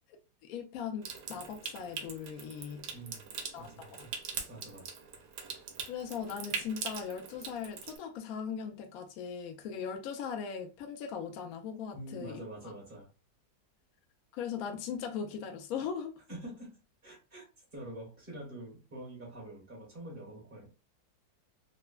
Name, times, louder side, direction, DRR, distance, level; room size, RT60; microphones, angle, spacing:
voice 1, 0.4-2.9 3.5-4.1 5.9-12.7 14.3-16.2, left 7 dB, 75° left, 0.8 m, -39 dB
Water tap faucet / Sink (filling or washing) / Trickle dribble, 1.0-8.0, right 6 dB, 75° right, 1.1 m, -42 dB
voice 2, 2.9-4.1 4.5-5.0 11.9-13.1 16.3-17.5 17.7-20.7, right 1 dB, 35° right, 1.2 m, -46 dB
3.3 x 2.0 x 2.2 m
omnidirectional pair, 2.0 m